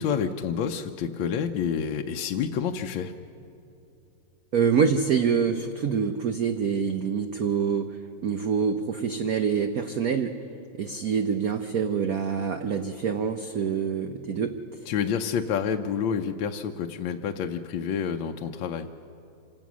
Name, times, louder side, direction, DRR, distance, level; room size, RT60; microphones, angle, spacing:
voice 1, 0.0-3.1 14.9-18.9, left 7 dB, 70° left, 5 dB, 1.3 m, -28 dB
voice 2, 4.5-7.9 8.2-10.3 10.8-14.5, right 6 dB, 60° right, 6 dB, 0.9 m, -26 dB
26.5 x 16.5 x 6.1 m, 2.8 s
omnidirectional pair, 2.3 m